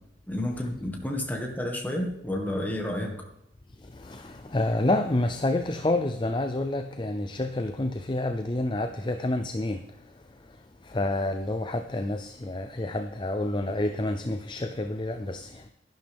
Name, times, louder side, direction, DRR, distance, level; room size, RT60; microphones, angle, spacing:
voice 1, 0.3-3.1, left 1 dB, 10° left, 1.9 m, -30 dB
voice 2, 4.0-9.8 10.9-15.7, left 2 dB, 25° left, 0.5 m, -28 dB
12.0 x 11.5 x 3.6 m
head